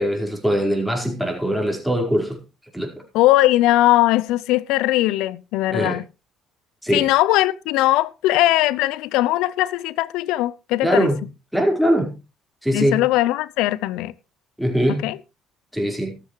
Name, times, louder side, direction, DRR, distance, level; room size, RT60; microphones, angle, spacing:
voice 1, 0.0-2.4 2.7-2.9 5.7-6.0 6.8-7.1 10.8-11.2 11.5-12.1 12.6-13.0 14.6-15.1 15.7-16.2, equal, ahead, 4.8 m, -21 dB
voice 2, 3.1-6.0 6.9-11.1 12.7-14.1 15.0-15.2, left 16 dB, 70° left, 0.6 m, -19 dB
14.0 x 12.5 x 3.2 m
hypercardioid pair, 60°, 0 cm